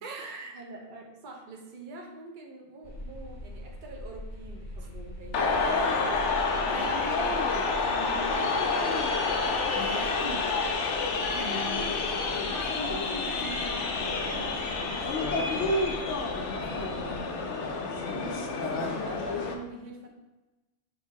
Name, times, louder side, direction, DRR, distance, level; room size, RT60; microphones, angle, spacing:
voice 1, 0.0-0.6 4.8-4.9 6.7-6.9 9.7-10.5 11.3-11.8, right 1 dB, 75° right, 2 dB, 0.3 m, -39 dB
voice 2, 0.5-9.2 11.6-20.1, right 2 dB, 50° right, 0 dB, 0.8 m, -44 dB
sound 1, 2.8-17.2, left 1 dB, 45° left, 0.8 m, -44 dB
sound 2, 5.3-19.5, left 3 dB, 75° left, 0.9 m, -29 dB
3.3 x 2.7 x 4.5 m, 1.1 s
omnidirectional pair, 1.2 m